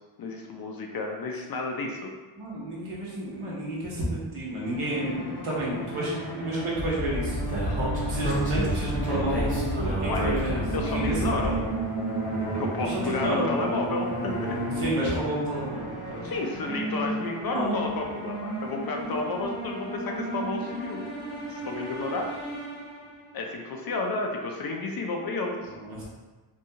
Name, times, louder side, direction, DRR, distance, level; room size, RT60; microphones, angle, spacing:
voice 1, 0.0-2.1 10.1-10.2 10.7-11.6 12.5-14.6 16.2-21.0 21.5-22.3 23.3-25.7, left 3 dB, 50° left, 2 dB, 0.5 m, -31 dB
voice 2, 2.3-7.4 8.1-11.4 12.8-13.5 14.8-16.3 17.5-17.8 25.9-26.0, right 1 dB, 75° right, -5 dB, 1.1 m, -31 dB
sound 1, 4.6-23.3, right 1 dB, 80° left, 1.2 m, -33 dB
Speech, 6.8-11.7, equal, 15° right, 1.0 m, -29 dB
2.7 x 2.3 x 2.7 m, 1.3 s
cardioid pair, 85°, 49 cm